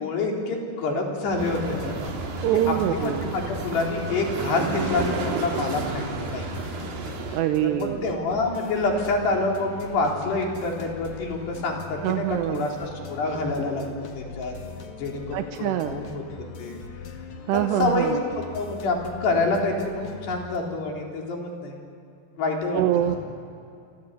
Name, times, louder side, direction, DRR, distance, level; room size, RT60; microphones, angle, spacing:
voice 1, 0.0-2.0 2.5-6.6 7.6-13.8 14.2-14.5 15.0-16.2 16.6-16.8 17.5-21.8 22.4-23.2, left 3 dB, 70° left, 0 dB, 5.9 m, -27 dB
sound 1, 1.3-20.6, left 5 dB, 50° left, 2.9 m, -41 dB
sound 2, 1.4-7.4, right 4 dB, 60° right, 4.6 m, -32 dB
voice 2, 2.4-3.3 7.3-8.0 12.0-12.7 15.3-16.0 17.5-18.2 22.7-23.2, right 13 dB, 80° right, 7 dB, 2.9 m, -24 dB
29.5 x 24.0 x 8.2 m, 2.5 s
omnidirectional pair, 5.1 m